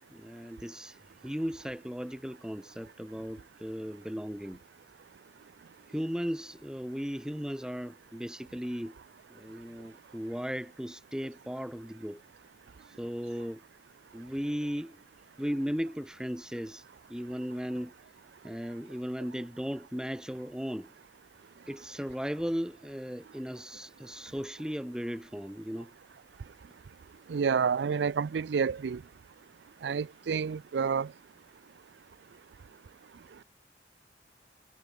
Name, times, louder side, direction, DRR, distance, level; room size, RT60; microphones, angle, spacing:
voice 1, 0.0-4.6 5.9-9.0 9.3-12.2 12.9-13.6 14.1-15.0 15.4-16.8 17.1-17.9 18.4-20.9 21.7-25.9, equal, 5° right, 1.4 m, -36 dB
voice 2, 27.3-29.0 29.8-31.1, right 6 dB, 75° right, 0.4 m, -29 dB
head